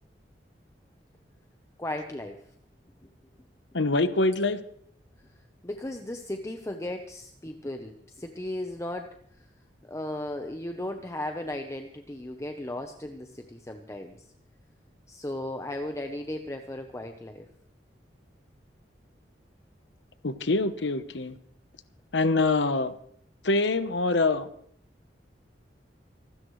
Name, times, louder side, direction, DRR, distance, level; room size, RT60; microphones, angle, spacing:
voice 1, 1.8-2.4 5.6-9.4 9.8-14.2 15.1-17.5, left 1 dB, 15° left, 5 dB, 0.8 m, -36 dB
voice 2, 3.7-4.6 20.2-21.4 22.1-22.9 23.4-24.5, left 3 dB, 90° left, 11 dB, 1.0 m, -25 dB
25.5 x 13.0 x 3.2 m, 0.63 s
head